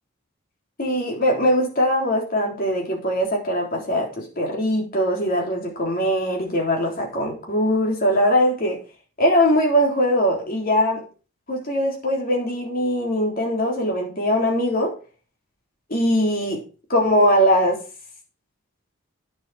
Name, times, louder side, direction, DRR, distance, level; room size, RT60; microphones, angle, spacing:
voice 1, 0.8-8.8 9.2-11.0 11.5-14.9 15.9-16.6 16.9-17.8, equal, 45° left, 0 dB, 3.5 m, -21 dB
9.5 x 7.6 x 4.9 m, 0.35 s
head